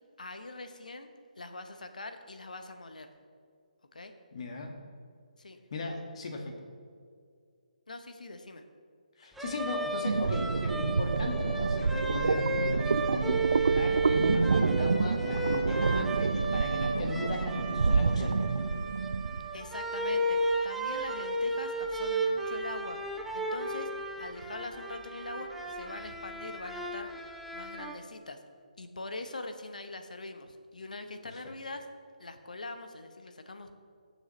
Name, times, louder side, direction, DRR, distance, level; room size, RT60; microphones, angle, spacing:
voice 1, 0.2-1.1 1.4-3.1 3.9-4.1 5.4-5.6 5.9-6.0 7.9-8.6 19.5-23.0 23.3-23.9 24.2-27.1 27.5-28.4 28.8-31.9 32.2-33.7, left 2 dB, 70° left, 7 dB, 1.0 m, -43 dB
voice 2, 4.3-4.7 5.7-6.5 9.2-12.5 13.1-18.7, left 2 dB, 45° left, 2 dB, 1.7 m, -37 dB
sound 1, 9.4-27.9, right 2 dB, 5° right, 0.6 m, -34 dB
sound 2, 10.0-19.5, right 4 dB, 65° right, 0.4 m, -28 dB
18.5 x 7.1 x 3.2 m, 2.2 s
figure-of-eight pair, 145°, 4 cm